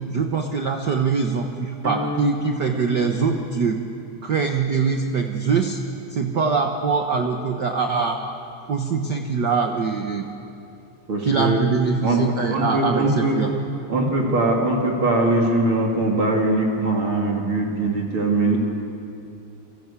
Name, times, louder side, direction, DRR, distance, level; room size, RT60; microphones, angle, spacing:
voice 1, 0.1-3.8 4.2-5.8 6.1-8.2 8.7-10.3 11.2-13.5, right 5 dB, 60° right, 4 dB, 1.1 m, -23 dB
sound 1, 1.8-4.1, left 2 dB, 20° right, 3.4 m, -32 dB
voice 2, 11.1-11.6 12.0-13.4 13.9-18.6, right 2 dB, 40° right, 0 dB, 3.0 m, -21 dB
29.0 x 22.5 x 8.4 m, 2.7 s
omnidirectional pair, 3.8 m